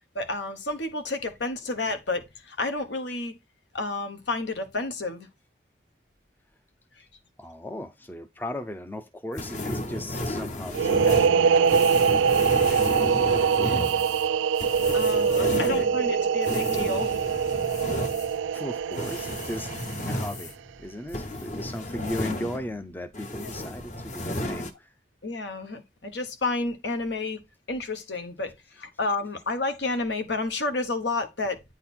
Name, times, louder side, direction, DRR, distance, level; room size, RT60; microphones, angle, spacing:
voice 1, 0.1-3.4 3.7-5.3 7.0-7.1 13.6-14.0 14.9-17.2 21.9-22.2 23.4-23.7 25.2-27.4 27.7-31.6, left 3 dB, 70° left, 1.1 m, -31 dB
voice 2, 7.4-13.2 15.3-15.6 18.5-19.7 20.1-20.5 20.8-24.9, left 1 dB, 10° left, 0.5 m, -37 dB
sound 1, 9.4-22.9 23.1-24.7, left 1 dB, 40° left, 0.9 m, -33 dB
sound 2, 10.7-20.2, right 6 dB, 90° right, 0.3 m, -23 dB
9.4 x 3.9 x 4.4 m
head